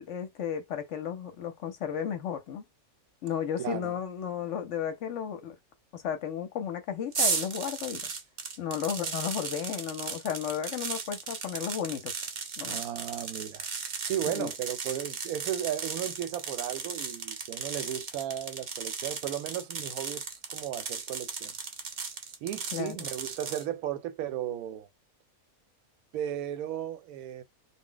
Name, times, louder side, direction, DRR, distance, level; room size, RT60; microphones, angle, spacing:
voice 1, 0.0-2.6 3.2-5.6 5.9-8.1 8.6-12.1 12.6-12.8 14.3-14.5 22.7-23.0, left 8 dB, 60° left, 0.9 m, -34 dB
voice 2, 3.6-3.9 12.6-21.5 22.4-24.9 26.1-27.4, right 11 dB, 80° right, 1.0 m, -35 dB
sound 1, 7.1-23.6, right 5 dB, 50° right, 0.5 m, -36 dB
2.4 x 2.1 x 3.8 m
omnidirectional pair, 1.5 m